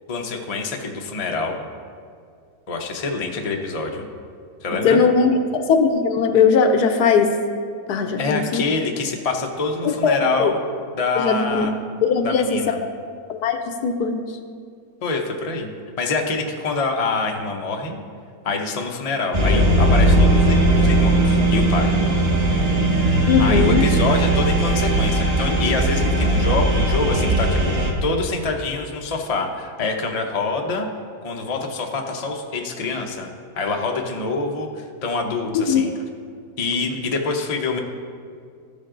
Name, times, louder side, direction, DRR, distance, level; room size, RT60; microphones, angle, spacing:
voice 1, 0.1-1.6 2.7-4.1 4.6-5.0 8.2-10.6 10.9-11.7 12.2-12.8 15.0-15.7 16.0-18.0 18.4-21.9 23.4-30.9 31.2-33.3 33.6-35.9 36.6-37.8, left 3 dB, 50° left, 2 dB, 0.4 m, -25 dB
voice 2, 4.8-7.3 7.9-8.6 10.0-10.5 11.2-11.7 12.0-12.6 13.3-14.2 23.3-23.8 35.5-35.9, left 5 dB, 70° left, 7 dB, 1.1 m, -19 dB
sound 1, 19.3-27.9, right 1 dB, 30° right, 0.8 m, -18 dB
14.0 x 5.2 x 3.8 m, 2.2 s
omnidirectional pair, 1.9 m